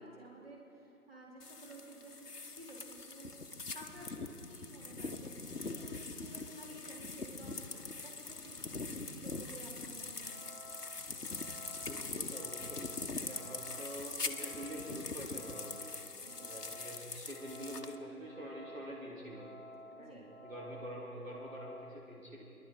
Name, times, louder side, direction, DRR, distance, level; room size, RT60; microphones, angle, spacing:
voice 1, 0.0-3.3 3.7-10.4 16.2-16.5 19.9-20.3, right 1 dB, 40° right, -3 dB, 2.6 m, -53 dB
sound 1, 1.4-18.0, left 3 dB, 90° left, 1.1 m, -43 dB
sound 2, 10.1-21.9, left 1 dB, 50° left, 1.1 m, -54 dB
voice 2, 11.9-15.9 16.4-19.5 20.0-22.4, right 1 dB, 60° right, -3 dB, 2.2 m, -46 dB
24.5 x 11.5 x 3.8 m, 2.7 s
figure-of-eight pair, 170°, 45 cm